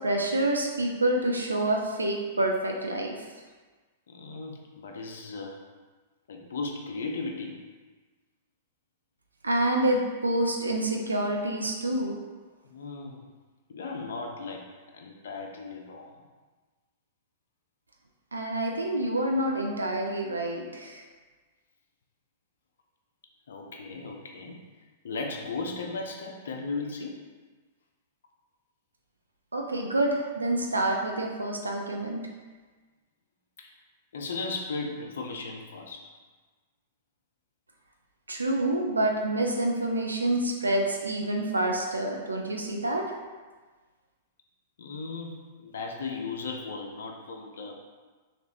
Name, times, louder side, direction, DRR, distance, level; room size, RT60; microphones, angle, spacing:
voice 1, 0.0-3.1 9.4-12.2 18.3-21.0 29.5-32.2 38.3-43.1, right 1 dB, 85° right, 1 dB, 0.3 m, -27 dB
voice 2, 4.1-5.6 6.3-7.6 12.6-13.2 13.7-16.2 19.7-19.8 23.5-24.6 25.0-27.1 33.6-33.7 34.1-36.1 44.8-47.7, left 3 dB, 65° left, 1 dB, 0.4 m, -36 dB
3.0 x 2.9 x 2.8 m, 1.4 s
figure-of-eight pair, 105°, 0 cm